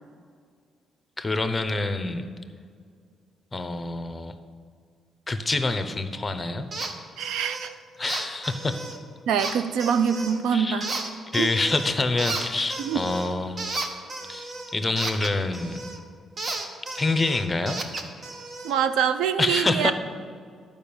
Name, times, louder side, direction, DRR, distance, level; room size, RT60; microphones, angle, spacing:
voice 1, 1.2-2.2 3.5-4.4 5.3-6.7 8.0-8.8 10.5-10.9 11.3-13.6 14.3-15.8 16.9-17.8 19.4-19.9, left 2 dB, 20° left, 9 dB, 0.8 m, -26 dB
sound 1, 6.7-6.9 7.2-7.7 8.0-9.0 9.4-10.4 10.8-11.9 12.2-16.0 16.4-18.8, right 3 dB, 45° right, 1.1 m, -34 dB
voice 2, 7.2-7.7 9.3-10.9 11.4-11.5 12.8-13.0 18.6-19.9, right 7 dB, 85° right, 10 dB, 0.5 m, -24 dB
11.0 x 5.2 x 7.0 m, 2.1 s
cardioid pair, 90°, 0 cm